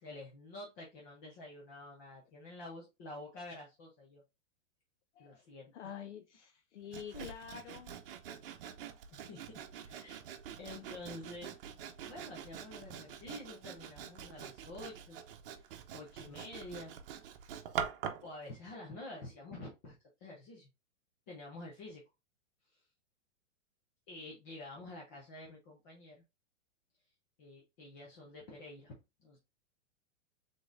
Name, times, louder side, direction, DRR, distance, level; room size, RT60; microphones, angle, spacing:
voice 1, 0.0-4.2 5.2-5.7 7.1-7.2 9.1-10.2 10.6-11.6 12.0-15.2 15.5-15.7 15.9-17.0 18.2-20.0 20.2-20.7 21.3-22.0 22.7-22.8 24.1-26.2 27.4-28.9 29.2-29.4, left 2 dB, 15° left, 0.4 m, -49 dB
voice 2, 5.7-7.9, left 9 dB, 70° left, 0.7 m, -47 dB
Sawing, 6.9-18.3, right 8 dB, 50° right, 0.8 m, -45 dB
5.0 x 3.8 x 2.5 m
supercardioid pair, 165°, 37 cm